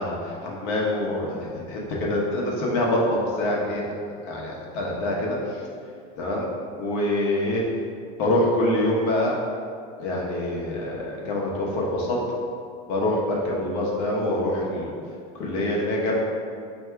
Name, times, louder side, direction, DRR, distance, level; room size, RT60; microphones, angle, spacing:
voice 1, 0.0-3.9 4.3-5.4 6.2-6.5 6.8-7.6 8.2-9.3 10.0-12.2 12.9-14.9 15.3-16.1, left 1 dB, 50° left, -3 dB, 0.8 m, -25 dB
3.3 x 2.7 x 4.5 m, 2.3 s
cardioid pair, 175°, 19 cm